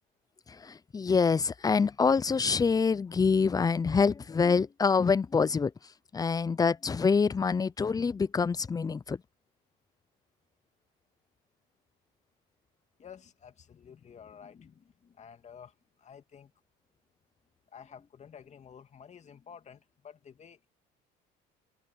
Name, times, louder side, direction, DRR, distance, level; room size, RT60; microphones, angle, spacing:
voice 1, 0.6-5.7 6.1-9.2, left 5 dB, 20° left, 0.6 m, -26 dB
voice 2, 13.0-16.5 17.7-20.7, left 7 dB, 35° left, 2.6 m, -51 dB
supercardioid pair, 100°, 20 cm